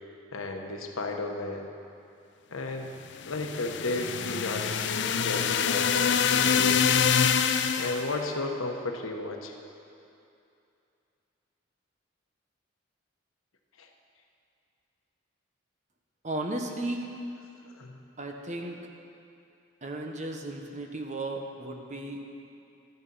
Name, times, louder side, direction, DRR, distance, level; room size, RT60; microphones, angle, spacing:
voice 1, 0.3-1.7 2.5-3.0 3.3-6.8 7.8-9.5 13.8-13.9 17.7-18.0, left 2 dB, 90° left, 3 dB, 1.1 m, -33 dB
sound 1, 3.2-8.1, left 7 dB, 55° left, 0.5 m, -25 dB
voice 2, 16.2-17.1 18.2-18.8 19.8-22.2, right 2 dB, 35° right, 3 dB, 1.0 m, -35 dB
12.5 x 9.3 x 5.5 m, 2.6 s
head